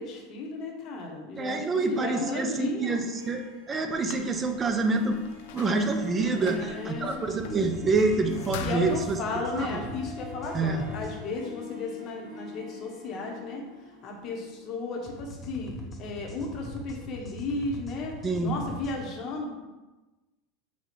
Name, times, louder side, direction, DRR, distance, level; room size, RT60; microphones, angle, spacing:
voice 1, 0.0-3.0 6.3-7.2 8.6-13.6 14.0-15.7 16.0-18.2 18.4-19.5, left 3 dB, 40° left, 0 dB, 0.9 m, -34 dB
voice 2, 1.4-5.2 5.5-9.2 9.6-9.8 10.5-10.9 18.2-18.5, right 3 dB, 20° right, 6 dB, 0.5 m, -27 dB
Harp, 3.0-16.9, left 5 dB, 70° right, 1.3 m, -46 dB
sound 1, 3.9-9.0, left 7 dB, 70° left, 0.4 m, -43 dB
sound 2, 7.3-11.2 15.1-19.0, left 1 dB, 20° left, 0.7 m, -41 dB
4.2 x 2.3 x 4.4 m, 1.1 s
supercardioid pair, 130°, 0 cm